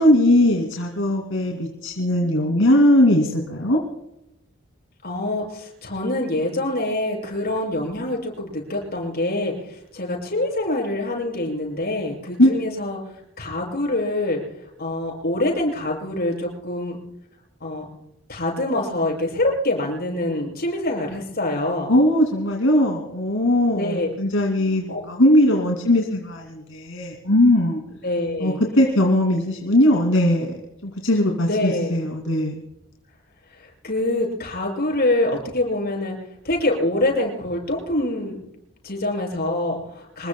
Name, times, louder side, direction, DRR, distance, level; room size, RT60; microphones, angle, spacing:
voice 1, 0.0-3.8 12.4-12.5 21.9-27.8 28.4-30.5 30.8-32.6, left 1 dB, 80° left, 0 dB, 2.5 m, -19 dB
voice 2, 5.0-9.5 9.9-13.0 13.4-14.4 14.8-17.0 17.6-17.8 18.3-21.9 23.7-24.1 24.9-25.0 28.0-28.6 31.4-31.9 33.8-36.2 36.4-38.4 38.8-40.3, left 1 dB, 50° left, 0 dB, 7.0 m, -25 dB
26.5 x 21.5 x 2.3 m, 0.84 s
head